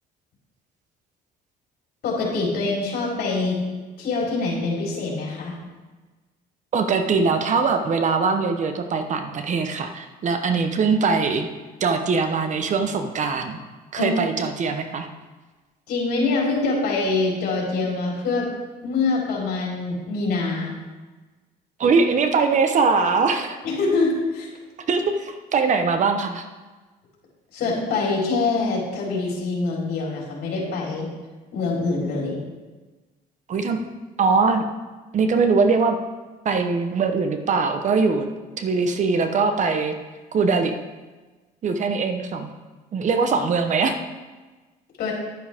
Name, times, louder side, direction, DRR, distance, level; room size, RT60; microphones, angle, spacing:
voice 1, 2.0-3.6 4.0-5.6 14.0-14.2 15.9-18.5 18.8-20.7 23.6-24.5 27.5-31.1 31.5-32.4 45.0-45.1, left 3 dB, 70° left, -3 dB, 3.9 m, -24 dB
voice 2, 6.7-11.5 11.8-13.6 13.9-15.1 21.8-23.6 24.9-26.4 33.5-33.8 34.2-34.7 35.1-36.0 36.4-38.3 38.6-40.0 40.3-40.7 41.6-42.5 42.9-44.0, right 4 dB, 45° right, 7 dB, 1.0 m, -21 dB
11.0 x 10.0 x 3.6 m, 1.3 s
cardioid pair, 110°, 17 cm